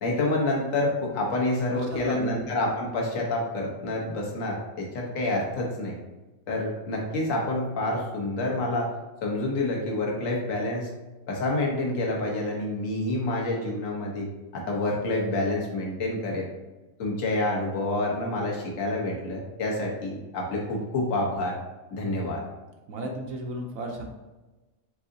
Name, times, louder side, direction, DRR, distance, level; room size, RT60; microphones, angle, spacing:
voice 1, 0.0-6.0 6.5-8.9 9.2-10.9 11.3-14.3 14.5-16.5 17.0-21.5 21.9-22.4, left 2 dB, 65° left, -1 dB, 1.3 m, -28 dB
voice 2, 1.7-2.3 22.9-24.0, right 1 dB, 75° right, 2 dB, 1.0 m, -34 dB
4.7 x 3.7 x 2.6 m, 1.1 s
omnidirectional pair, 1.5 m